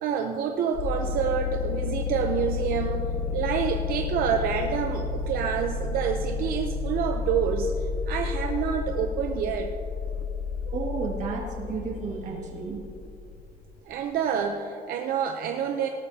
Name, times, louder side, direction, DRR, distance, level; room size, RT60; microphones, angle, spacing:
voice 1, 0.0-3.0 3.3-7.7 8.1-9.7 13.9-15.9, right 7 dB, 80° right, 4 dB, 0.7 m, -27 dB
sound 1, 0.7-13.4, left 5 dB, 85° left, 0.6 m, -31 dB
voice 2, 10.6-12.8, right 4 dB, 55° right, 0 dB, 1.8 m, -32 dB
17.5 x 12.5 x 2.8 m, 2.7 s
cardioid pair, 180°, 15 cm